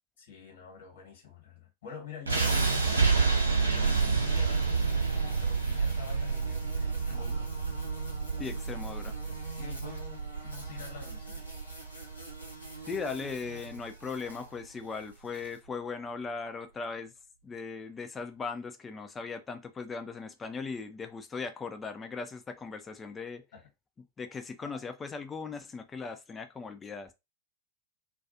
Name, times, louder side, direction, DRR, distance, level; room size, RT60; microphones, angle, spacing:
voice 1, 0.2-7.5 8.3-8.9 9.5-11.6 23.5-23.7, left 7 dB, 60° left, 1.2 m, -48 dB
sound 1, 2.3-14.3, right 4 dB, 80° right, 0.6 m, -29 dB
sound 2, 2.9-15.6, right 1 dB, 85° left, 0.8 m, -46 dB
voice 2, 8.4-9.1 12.9-17.1 17.4-23.4 24.2-27.1, left 4 dB, 20° left, 0.4 m, -38 dB
2.3 x 2.3 x 2.6 m
figure-of-eight pair, 90°, 0 cm